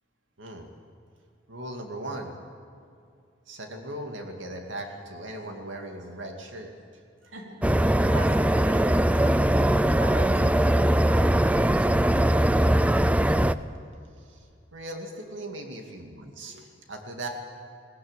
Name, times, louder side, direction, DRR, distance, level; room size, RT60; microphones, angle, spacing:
voice 1, 0.4-0.7 1.5-2.3 3.5-6.7 14.2-17.3, right 1 dB, 75° right, 3 dB, 2.4 m, -38 dB
voice 2, 7.2-7.6 8.1-9.4 10.0-11.9, right 2 dB, 90° right, 1 dB, 3.9 m, -40 dB
sound 1, 7.6-13.5, right 1 dB, 5° right, 0.5 m, -21 dB
21.0 x 18.5 x 9.0 m, 2.5 s
head